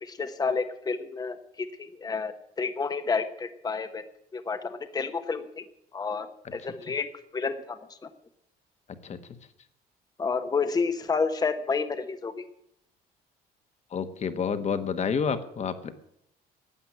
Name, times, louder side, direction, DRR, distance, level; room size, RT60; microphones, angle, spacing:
voice 1, 0.0-4.0 4.3-5.6 5.9-6.3 6.5-8.1 10.2-12.4, left 4 dB, 20° left, 9 dB, 1.0 m, -30 dB
voice 2, 13.9-15.9, left 6 dB, 40° left, 10 dB, 1.4 m, -29 dB
12.5 x 8.1 x 10.0 m, 0.76 s
cardioid pair, 110°, 17 cm